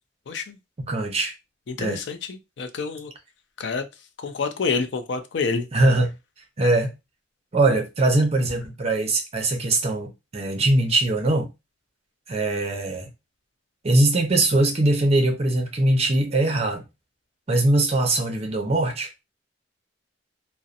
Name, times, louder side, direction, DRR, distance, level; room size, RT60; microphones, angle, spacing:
voice 1, 0.3-0.6 1.7-3.1 3.6-3.9 4.2-5.7, left 4 dB, 65° left, 0.4 m, -28 dB
voice 2, 0.8-1.3 1.8-2.0 5.7-6.1 6.6-6.9 7.5-11.5 12.3-13.1 13.8-16.8 17.5-19.1, right 2 dB, 35° right, 0.6 m, -21 dB
2.7 x 2.0 x 2.4 m
head